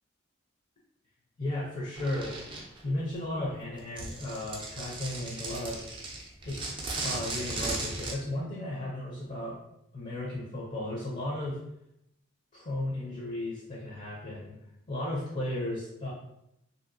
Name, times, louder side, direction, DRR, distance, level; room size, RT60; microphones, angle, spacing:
voice 1, 1.4-2.4 2.8-5.8 6.4-6.6 7.0-9.6 9.9-11.6 12.5-14.6 14.9-16.1, left 1 dB, 35° left, -4 dB, 0.5 m, -35 dB
sound 1, 1.9-2.8 3.8-8.1, right 2 dB, 25° right, 0.4 m, -36 dB
2.7 x 2.7 x 2.6 m, 0.80 s
head